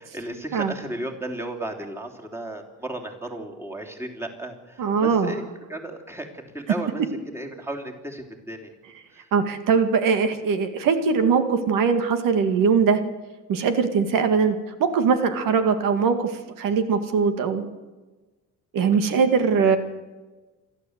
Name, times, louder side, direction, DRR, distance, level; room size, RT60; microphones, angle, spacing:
voice 1, 0.0-5.4 5.7-7.0 7.3-8.7 9.1-9.3 19.6-19.8, right 1 dB, 10° right, 1 dB, 3.1 m, -34 dB
voice 2, 4.8-5.4 9.3-13.0 13.5-17.7 18.7-19.8, right 5 dB, 80° right, 8 dB, 2.1 m, -21 dB
28.0 x 12.0 x 8.1 m, 1.2 s
cardioid pair, 135°, 32 cm